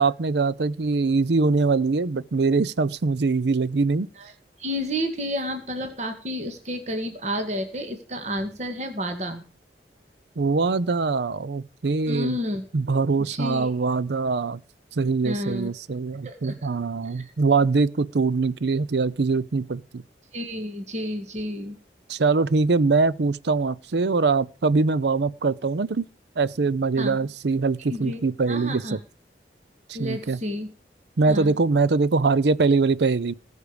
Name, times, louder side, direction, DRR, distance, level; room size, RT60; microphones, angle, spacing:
voice 1, 0.0-4.1 10.4-12.4 12.7-14.6 15.0-20.0 22.1-26.1 26.4-29.0 29.9-30.4 31.2-33.3, right 4 dB, 70° right, 0.6 m, -23 dB
voice 2, 4.6-9.4 12.1-12.6 13.2-13.7 15.2-15.7 16.2-16.7 17.0-17.3 20.3-21.8 27.0-27.2 27.9-28.2 28.5-29.0 29.9-30.7 31.3-31.5, equal, 40° right, 1.9 m, -31 dB
19.5 x 6.6 x 5.1 m
head